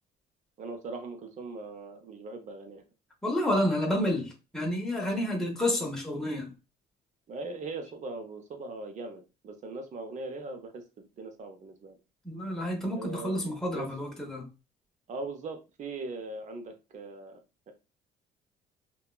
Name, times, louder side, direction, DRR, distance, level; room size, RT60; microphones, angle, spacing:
voice 1, 0.6-2.8 7.3-12.0 13.0-13.9 15.1-17.4 17.7-17.8, right 3 dB, 45° right, 0.7 m, -40 dB
voice 2, 3.2-6.5 12.2-14.5, left 1 dB, 5° left, 0.8 m, -30 dB
2.8 x 2.2 x 2.2 m
cardioid pair, 110°, 17 cm